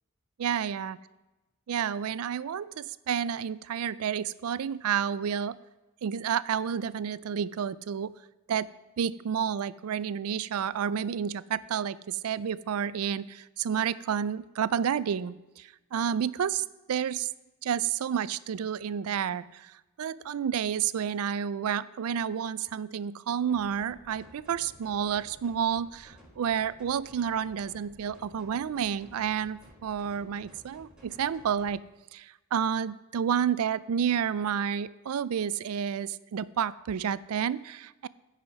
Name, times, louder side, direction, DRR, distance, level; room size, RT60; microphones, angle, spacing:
voice 1, 0.4-1.0 1.7-5.6 6.0-8.1 8.5-8.7 9.0-17.3 17.6-31.8 32.1-38.1, right 8 dB, 75° right, 18 dB, 0.4 m, -30 dB
sound 1, 23.5-31.7, equal, 5° right, 3.0 m, -55 dB
14.5 x 5.8 x 4.8 m, 1.1 s
head